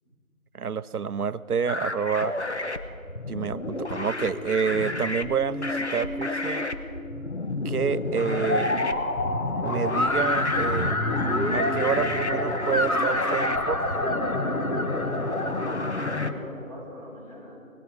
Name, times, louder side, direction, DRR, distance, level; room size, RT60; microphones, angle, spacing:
voice 1, 0.5-2.4 3.3-6.7 7.6-8.7 9.6-10.9 11.5-13.8, right 6 dB, 90° right, 16 dB, 0.6 m, -28 dB
sound 1, 1.7-16.3, left 2 dB, 50° left, 0.9 m, -31 dB
sound 2, 3.6-16.3, left 2 dB, 70° left, 1.3 m, -29 dB
voice 2, 15.1-17.6, left 2 dB, 25° left, -4 dB, 2.5 m, -41 dB
18.5 x 14.5 x 5.2 m, 2.4 s
figure-of-eight pair, 170°, 43 cm